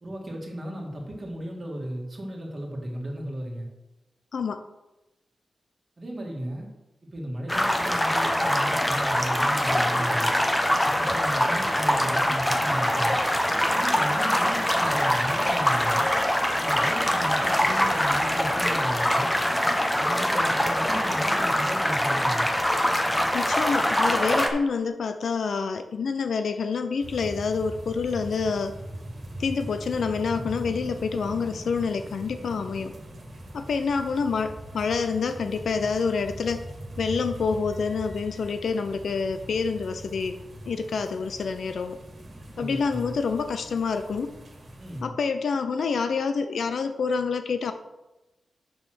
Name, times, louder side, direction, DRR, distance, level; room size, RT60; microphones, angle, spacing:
voice 1, 0.0-3.7 6.0-6.7 7.1-10.3 10.8-13.2 13.7-16.1 16.6-19.3 20.0-22.5 42.6-43.2 44.8-45.1, equal, 30° right, 0 dB, 1.9 m, -35 dB
voice 2, 4.3-4.6 23.3-28.7 29.4-32.9 33.5-36.7 37.0-40.4 40.7-42.0 42.6-44.3 45.0-47.7, left 5 dB, 70° left, 9 dB, 0.5 m, -27 dB
sound 1, 7.5-24.5, equal, 10° left, 0.8 m, -24 dB
sound 2, 27.0-45.0, right 1 dB, 45° right, 1.9 m, -41 dB
7.0 x 5.5 x 6.2 m, 1.0 s
wide cardioid pair, 165°, 0 cm